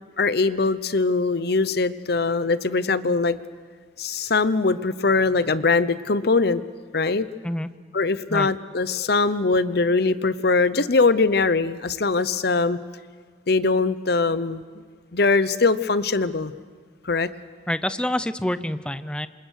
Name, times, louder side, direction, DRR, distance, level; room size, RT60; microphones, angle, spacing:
voice 1, 0.2-3.4 4.0-6.6 6.9-7.3 7.9-12.8 13.5-14.6 15.1-16.5 17.0-17.3, left 3 dB, 60° left, 15 dB, 0.8 m, -21 dB
voice 2, 17.7-19.3, left 1 dB, 5° left, 13 dB, 0.7 m, -27 dB
27.0 x 27.0 x 6.5 m, 1.5 s
head